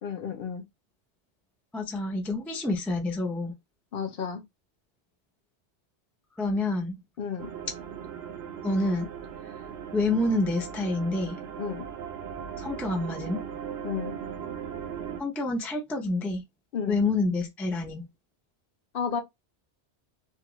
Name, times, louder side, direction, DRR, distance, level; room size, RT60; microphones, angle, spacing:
voice 1, 0.0-0.6 3.9-4.4 7.2-7.5 11.6-11.9 13.8-14.1 16.7-17.0 18.9-19.2, left 7 dB, 60° left, 0.7 m, -32 dB
voice 2, 1.7-3.5 6.4-7.0 8.6-9.1 9.9-11.4 12.6-13.4 15.2-16.4 16.9-18.0, left 2 dB, ahead, 0.3 m, -28 dB
sound 1, 7.4-15.2, right 8 dB, 70° right, 0.8 m, -38 dB
2.4 x 2.3 x 2.9 m
omnidirectional pair, 1.1 m